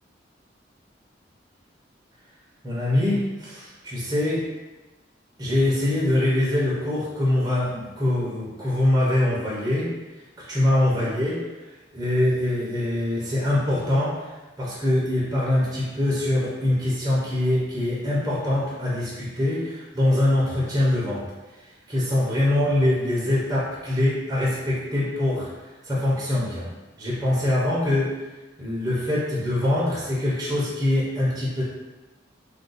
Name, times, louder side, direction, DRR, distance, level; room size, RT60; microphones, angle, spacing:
voice 1, 2.6-4.4 5.4-9.9 10.4-11.4 11.9-14.3 14.6-21.2 21.9-25.5 25.9-26.7 27.0-28.1 28.6-31.6, left 1 dB, 20° right, -7 dB, 0.6 m, -23 dB
2.5 x 2.2 x 3.8 m, 1.1 s
head